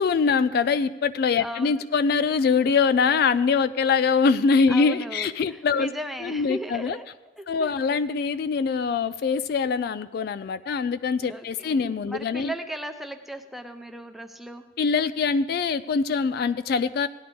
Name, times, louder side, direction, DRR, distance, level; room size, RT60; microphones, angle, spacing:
voice 1, 0.0-5.9 6.2-7.0 7.5-12.5 14.8-17.1, left 5 dB, 55° left, 14 dB, 0.3 m, -23 dB
voice 2, 1.4-1.9 4.7-7.1 7.4-7.8 11.2-14.6, equal, ahead, 5 dB, 0.6 m, -37 dB
17.0 x 11.0 x 3.4 m, 1.2 s
head